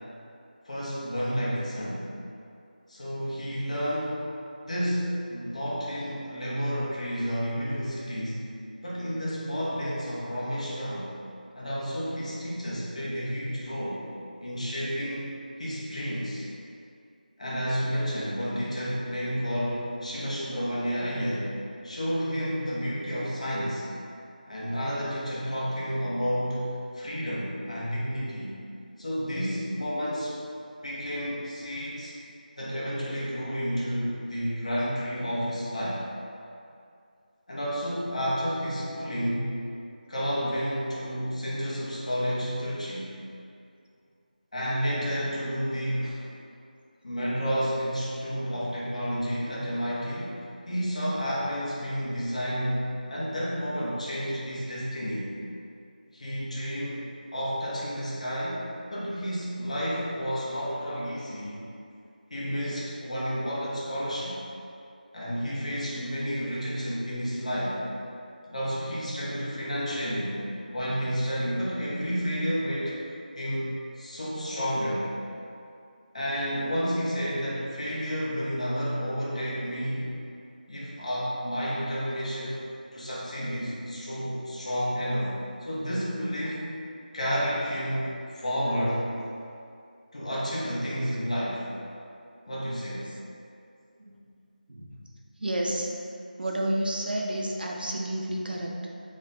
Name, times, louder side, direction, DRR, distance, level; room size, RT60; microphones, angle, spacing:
voice 1, 0.6-2.1 2.9-4.3 4.7-8.5 8.8-11.1 11.6-14.1 14.4-15.3 15.6-16.5 17.4-21.5 21.8-23.9 24.5-26.7 26.9-28.5 29.0-30.4 30.8-32.2 32.6-36.0 37.5-39.5 40.1-43.1 44.5-46.2 47.0-55.3 56.1-57.1 57.3-58.6 58.9-61.6 62.3-64.4 65.1-67.8 68.5-70.3 70.7-73.0 73.4-75.1 76.1-80.1 80.7-82.6 82.9-85.3 85.6-86.7 87.1-89.1 90.1-91.7 92.5-93.1, equal, 45° left, -7 dB, 0.9 m, -30 dB
voice 2, 94.7-95.1 95.4-95.9 96.4-98.8, right 1 dB, 85° right, -1 dB, 0.6 m, -31 dB
3.2 x 2.2 x 3.9 m, 2.5 s
figure-of-eight pair, 175°, 5 cm